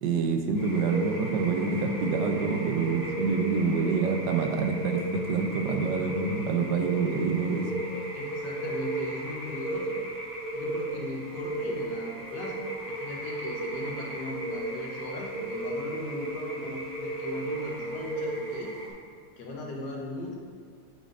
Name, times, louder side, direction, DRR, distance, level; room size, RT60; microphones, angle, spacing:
voice 1, 0.0-7.7, right 5 dB, 90° right, 4 dB, 1.3 m, -27 dB
sound 1, 0.5-18.9, right 2 dB, 15° right, 1.3 m, -34 dB
voice 2, 8.1-10.0 10.5-18.7 19.4-20.4, left 2 dB, 90° left, -1 dB, 1.6 m, -38 dB
7.6 x 5.1 x 2.5 m, 2.1 s
omnidirectional pair, 1.8 m